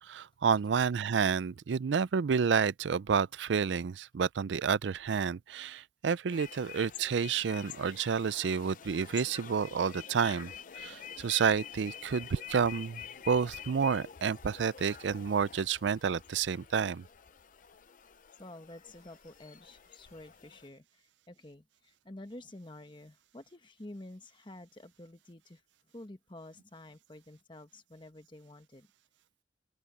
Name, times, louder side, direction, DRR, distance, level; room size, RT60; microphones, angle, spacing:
voice 1, 0.0-17.0, right 6 dB, 90° right, 0.4 m, -30 dB
sound 1, 6.3-20.7, left 8 dB, 45° left, 0.6 m, -48 dB
voice 2, 18.4-25.6 25.9-28.9, left 1 dB, 25° left, 1.3 m, -50 dB
open air
head